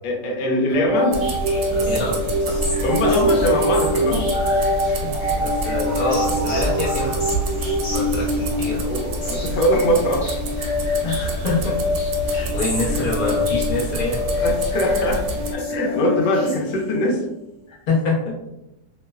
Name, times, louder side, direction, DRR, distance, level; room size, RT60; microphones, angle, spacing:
voice 1, 0.0-1.2 2.8-4.3 8.8-10.4 12.9-13.1 14.4-15.3 15.5-17.2, equal, 75° left, 0 dB, 1.2 m, -22 dB
sound 1, 0.7-17.1, left 1 dB, 40° left, 1.3 m, -24 dB
sound 2, 1.1-15.6, right 1 dB, 70° right, 0.9 m, -29 dB
voice 2, 1.8-2.7 4.8-7.2 7.9-8.8 11.0-11.8 12.3-14.2 17.7-18.4, left 2 dB, 60° left, -6 dB, 0.4 m, -26 dB
3.0 x 2.0 x 2.3 m, 0.90 s
omnidirectional pair, 1.9 m